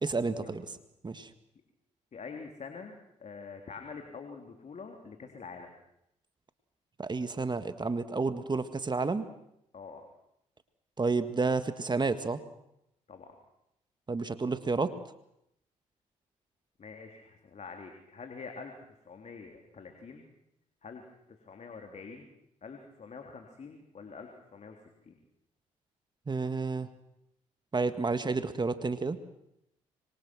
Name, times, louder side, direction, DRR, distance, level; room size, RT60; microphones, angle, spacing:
voice 1, 0.0-0.6 1.0-1.3 7.0-9.2 11.0-12.4 14.1-14.9 26.3-26.9 27.7-29.2, right 4 dB, 30° right, 11 dB, 1.8 m, -30 dB
voice 2, 2.1-5.7 9.7-10.0 13.1-13.3 16.8-20.3 20.8-22.3 22.6-25.2, left 5 dB, 50° left, 3 dB, 3.4 m, -46 dB
25.5 x 24.0 x 6.3 m, 0.79 s
hypercardioid pair, 50°, 15 cm